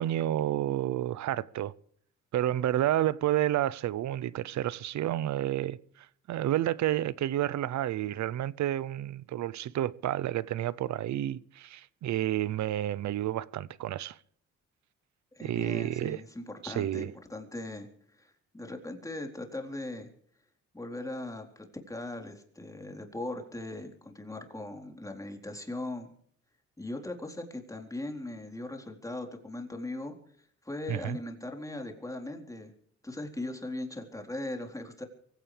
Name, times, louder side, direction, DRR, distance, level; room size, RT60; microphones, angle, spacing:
voice 1, 0.0-1.7 2.3-14.2 15.4-16.2 16.6-17.1 30.9-31.2, right 12 dB, 70° right, 0.8 m, -30 dB
voice 2, 15.3-17.9 18.2-20.1 20.7-26.1 26.8-30.1 30.6-32.7 33.0-35.0, left 2 dB, 10° left, 4.0 m, -39 dB
24.0 x 16.5 x 3.4 m
cardioid pair, 90°, 30 cm